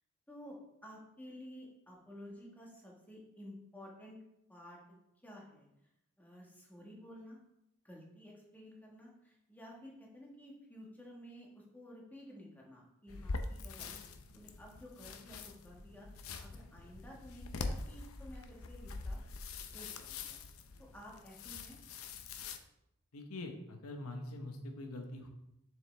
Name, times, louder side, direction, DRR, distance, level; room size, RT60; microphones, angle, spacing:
voice 1, 0.3-4.2 4.5-4.8 5.2-5.7 6.2-7.4 7.8-14.0 14.3-19.2 19.7-20.4 20.8-21.8, equal, 10° left, -2 dB, 1.5 m, -53 dB
sound 1, 13.1-22.6, left 3 dB, 70° left, 0.6 m, -44 dB
voice 2, 23.1-25.3, left 2 dB, 90° left, 4 dB, 1.0 m, -44 dB
7.3 x 6.4 x 3.4 m, 0.84 s
head